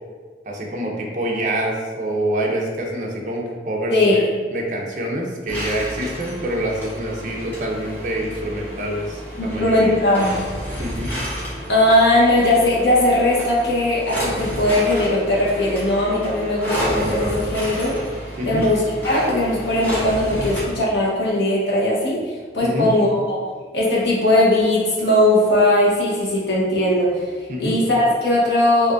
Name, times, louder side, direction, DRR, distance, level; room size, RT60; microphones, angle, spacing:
voice 1, 0.5-4.2 4.5-9.9 10.8-11.1 18.4-18.7 22.6-22.9 27.5-27.8, right 1 dB, 45° right, -1 dB, 0.5 m, -26 dB
voice 2, 3.9-4.3 9.4-10.4 11.7-18.0 18.4-23.4 23.7-27.3 27.6-28.9, left 1 dB, 85° left, -5 dB, 1.0 m, -19 dB
sound 1, 5.5-20.6, equal, 10° left, 0.8 m, -30 dB
4.6 x 2.6 x 2.5 m, 1.5 s
head